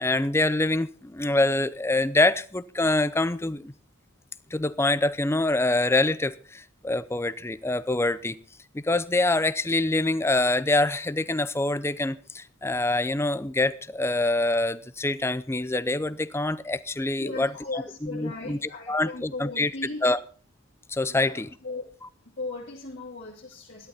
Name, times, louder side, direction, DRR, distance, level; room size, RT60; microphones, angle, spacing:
voice 1, 0.0-3.7 4.5-8.4 8.7-18.6 18.9-19.7 20.0-20.2 20.9-21.5, left 2 dB, 10° left, 0.5 m, -25 dB
voice 2, 17.2-20.0 21.1-21.8 22.4-23.9, left 3 dB, 55° left, 2.6 m, -37 dB
14.0 x 12.0 x 4.3 m
head